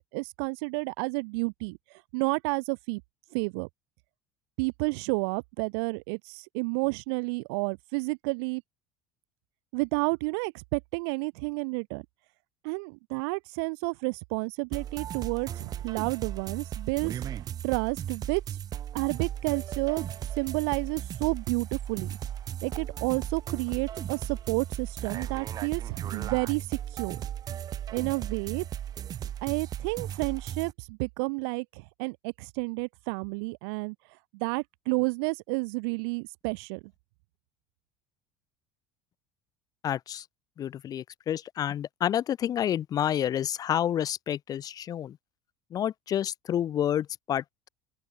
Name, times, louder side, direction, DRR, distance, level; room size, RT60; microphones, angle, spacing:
voice 1, 0.0-1.8 2.1-3.0 3.3-3.7 4.6-8.6 9.7-12.0 12.6-17.2 17.6-18.4 18.9-20.1 20.4-22.1 22.6-27.2 27.9-28.6 29.4-33.9 34.3-36.8, right 31 dB, 85° right, 0.9 m, -30 dB
sound 1, 14.7-30.7, right 10 dB, 30° right, 0.8 m, -36 dB
voice 2, 39.8-40.2 40.6-45.2 45.7-47.7, left 10 dB, 30° left, 0.6 m, -29 dB
open air
cardioid pair, 160°, 13 cm